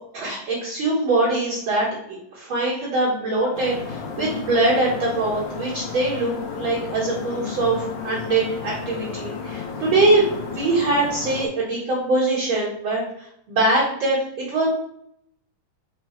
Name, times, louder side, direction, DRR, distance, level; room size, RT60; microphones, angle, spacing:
voice 1, 0.1-1.9 2.3-13.0 13.5-14.7, right 2 dB, 55° right, -8 dB, 1.4 m, -22 dB
sound 1, 3.5-11.5, left 5 dB, 75° left, 1.9 m, -33 dB
5.5 x 2.3 x 4.2 m, 0.73 s
omnidirectional pair, 4.0 m